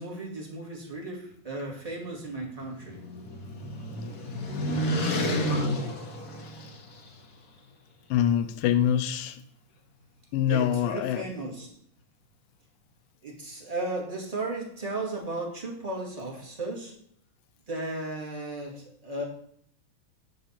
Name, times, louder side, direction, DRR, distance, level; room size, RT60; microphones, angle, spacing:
voice 1, 0.0-3.0 10.4-11.7 13.2-16.9 17.7-19.2, right 2 dB, 15° right, 1.5 m, -35 dB
sound 1, 2.3-7.1, equal, 70° left, 0.9 m, -30 dB
voice 2, 8.1-9.4 10.3-11.2, left 10 dB, 90° left, 2.3 m, -25 dB
11.5 x 4.0 x 7.4 m
omnidirectional pair, 3.8 m